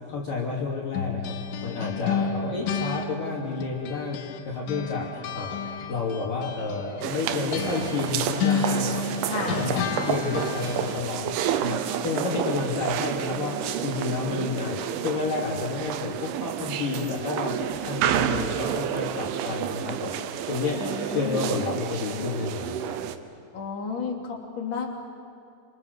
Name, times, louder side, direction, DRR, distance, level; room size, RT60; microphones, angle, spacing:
voice 1, 0.1-1.3 1.6-4.2 4.5-9.1 9.4-14.8 15.0-20.2 20.5-23.0, left 4 dB, 45° left, -4 dB, 3.9 m, -30 dB
sound 1, 0.9-4.4 4.7-11.1, left 6 dB, 75° left, 3.5 m, -31 dB
sound 2, 7.0-23.2, right 10 dB, 75° right, 3.4 m, -30 dB
voice 2, 9.2-9.7 20.8-21.6 23.5-24.9, left 5 dB, 30° left, -1 dB, 2.9 m, -32 dB
28.0 x 27.5 x 6.8 m, 2.6 s
omnidirectional pair, 5.8 m